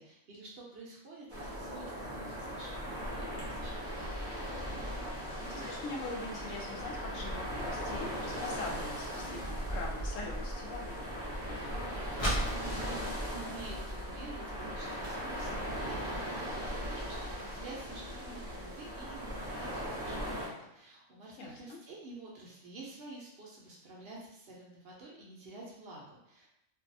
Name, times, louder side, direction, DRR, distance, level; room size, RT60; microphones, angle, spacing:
voice 1, 0.0-4.2 12.1-26.5, right 2 dB, 60° right, -3 dB, 0.7 m, -49 dB
sound 1, 1.3-20.5, equal, 20° right, 0.4 m, -39 dB
voice 2, 5.4-11.0 16.8-17.0 21.4-21.8, left 3 dB, 75° left, 0 dB, 0.9 m, -42 dB
sound 2, 6.5-14.3 14.6-14.7 15.0-15.4 15.9-16.0 16.5-16.6 16.9-17.0 17.4-17.5, right 1 dB, 40° left, 0.5 m, -40 dB
2.6 x 2.3 x 2.5 m, 0.84 s
omnidirectional pair, 1.4 m